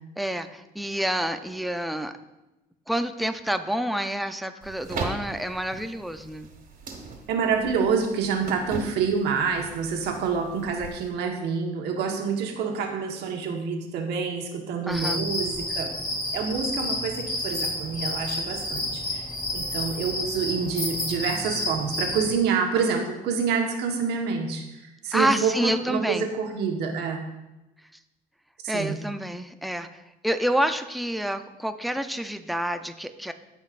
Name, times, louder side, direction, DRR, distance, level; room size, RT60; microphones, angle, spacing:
voice 1, 0.2-2.1 2.9-6.5 14.9-15.2 25.1-26.2 28.7-33.3, right 1 dB, ahead, 8 dB, 0.5 m, -28 dB
sound 1, 4.6-11.1, right 4 dB, 55° right, 1.8 m, -39 dB
voice 2, 7.3-15.9 16.3-19.2 19.5-27.2 28.6-29.0, right 5 dB, 80° right, 2 dB, 1.3 m, -27 dB
sound 2, 14.9-22.3, left 1 dB, 25° left, 2.4 m, -30 dB
15.5 x 5.3 x 2.5 m, 0.99 s
cardioid pair, 110°, 17 cm